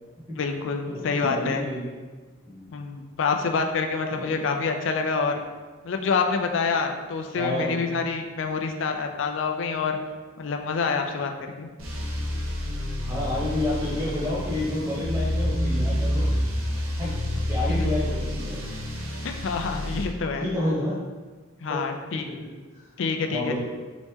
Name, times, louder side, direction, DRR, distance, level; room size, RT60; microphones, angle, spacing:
voice 1, 0.3-1.7 2.7-5.4 5.8-10.0 10.4-11.7 17.7-18.0 19.2-20.5 21.6-22.3 23.0-23.6, left 4 dB, 65° left, 4 dB, 0.4 m, -27 dB
voice 2, 0.9-1.9 2.5-2.7 4.1-4.4 7.3-7.8 13.0-16.3 17.0-18.6 19.8-20.0 20.4-21.0 21.7-21.8 23.3-23.6, left 1 dB, 15° right, -6 dB, 1.0 m, -30 dB
sound 1, 11.8-20.0, left 1 dB, 90° right, 0.8 m, -28 dB
4.1 x 3.0 x 3.5 m, 1.3 s
head